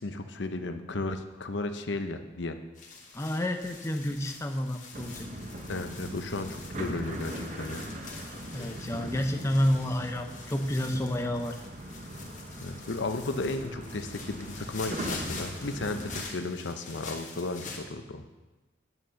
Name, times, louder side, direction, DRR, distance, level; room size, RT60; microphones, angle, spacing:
voice 1, 0.0-2.6 5.7-7.9 12.6-18.2, left 2 dB, 65° left, 8 dB, 0.8 m, -34 dB
sound 1, 2.8-17.8, left 4 dB, 40° left, 1.5 m, -45 dB
voice 2, 3.1-5.3 8.5-11.6, left 1 dB, 15° left, 4 dB, 0.5 m, -29 dB
sound 2, 4.9-16.2, right 1 dB, 40° right, 1.0 m, -40 dB
9.1 x 6.4 x 6.9 m, 1.1 s
head